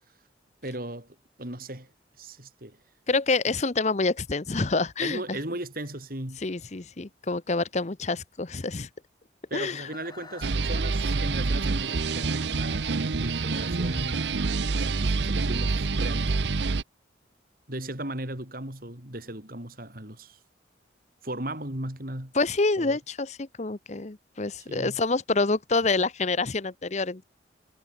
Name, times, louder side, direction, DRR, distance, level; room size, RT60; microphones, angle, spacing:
voice 1, 0.6-1.9 2.2-2.8 5.0-6.4 9.5-14.3 14.8-16.3 17.7-20.4 21.2-22.3 22.8-23.0 24.7-25.0, right 1 dB, 50° right, 5.3 m, -37 dB
voice 2, 3.1-5.4 6.4-8.9 9.5-9.9 22.3-27.2, left 3 dB, 40° left, 0.8 m, -27 dB
Chicken rooster, 9.5-15.5, left 4 dB, 25° left, 5.1 m, -51 dB
sound 1, 10.4-16.8, right 4 dB, 75° right, 0.8 m, -27 dB
head